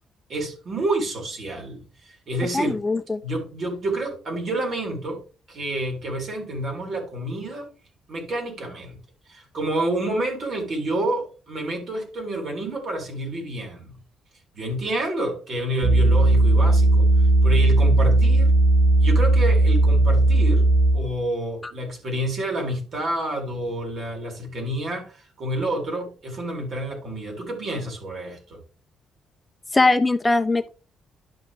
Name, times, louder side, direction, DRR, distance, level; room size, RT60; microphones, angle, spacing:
voice 1, 0.3-2.8 3.2-5.2 5.5-7.7 8.1-9.0 9.3-14.0 14.5-17.1 17.4-18.5 19.0-20.6 20.9-28.6, right 1 dB, 55° right, 2 dB, 4.2 m, -29 dB
voice 2, 2.5-3.2 29.7-30.7, left 2 dB, 15° left, 10 dB, 0.6 m, -20 dB
sound 1, 15.8-21.1, right 2 dB, 75° right, 3.0 m, -17 dB
11.5 x 5.6 x 3.5 m, 0.35 s
cardioid pair, 100°, 0 cm